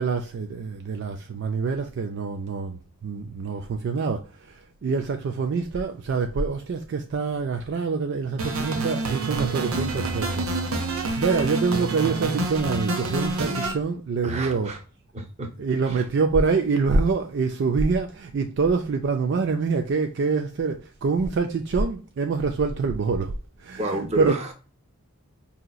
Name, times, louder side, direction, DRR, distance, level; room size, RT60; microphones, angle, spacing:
voice 1, 0.0-10.4 10.9-14.7 15.6-24.4, right 4 dB, 55° right, 0.4 m, -26 dB
sound 1, 8.4-13.7, right 2 dB, 75° right, 0.7 m, -27 dB
voice 2, 14.2-14.8 15.1-15.5 15.9-16.0 23.8-24.5, right 2 dB, 30° right, 0.7 m, -29 dB
4.9 x 2.8 x 2.2 m
head